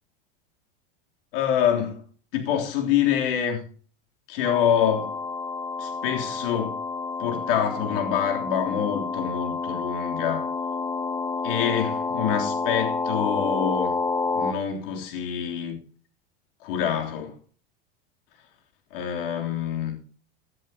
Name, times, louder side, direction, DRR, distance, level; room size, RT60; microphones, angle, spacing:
voice 1, 1.3-2.1 2.3-3.6 4.3-5.2 5.8-6.8 7.2-10.5 11.4-14.0 14.3-15.8 16.6-17.4 18.9-20.0, left 9 dB, 65° left, 3.4 m, -26 dB
sound 1, 4.4-14.5, left 4 dB, 15° left, 1.4 m, -29 dB
17.5 x 10.5 x 2.9 m
hypercardioid pair, 100°, 29 cm